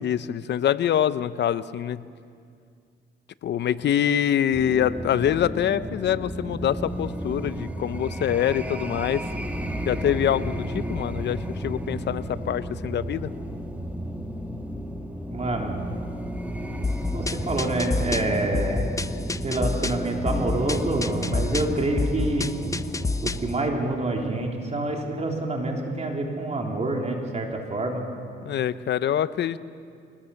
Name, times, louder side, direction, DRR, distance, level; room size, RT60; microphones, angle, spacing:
voice 1, 0.0-2.0 3.4-9.2 9.9-13.3 28.4-29.6, left 10 dB, 60° left, 15 dB, 0.8 m, -25 dB
sound 1, 4.5-23.6, equal, 5° right, 2.2 m, -33 dB
voice 2, 15.3-15.8 17.1-18.9 19.4-22.5 23.2-28.0, right 2 dB, 35° right, 1 dB, 3.5 m, -27 dB
sound 2, 16.8-23.5, left 3 dB, 15° left, 0.6 m, -29 dB
23.0 x 19.5 x 7.1 m, 2.3 s
cardioid pair, 90°, 20 cm